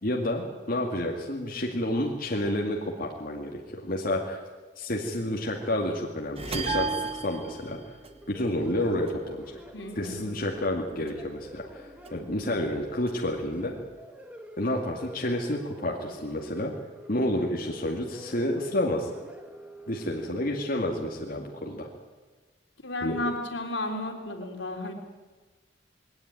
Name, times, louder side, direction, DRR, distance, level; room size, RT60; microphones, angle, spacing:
voice 1, 0.0-4.4 4.8-7.8 8.3-9.6 10.0-13.7 14.6-16.7 17.1-19.1 19.9-21.9 23.0-23.2, left 1 dB, 50° left, 0 dB, 2.3 m, -30 dB
sound 1, 6.4-8.8 9.1-10.8 11.1-12.5 12.8-14.0, right 3 dB, 35° right, 1.7 m, -40 dB
Bell, 6.6-8.3, right 4 dB, 65° right, 7.6 m, -34 dB
sound 2, 8.1-21.8, right 1 dB, 10° right, 2.0 m, -47 dB
voice 2, 9.7-10.3 22.8-24.9, left 2 dB, 80° left, 3 dB, 3.7 m, -33 dB
20.5 x 18.5 x 9.3 m, 1.3 s
head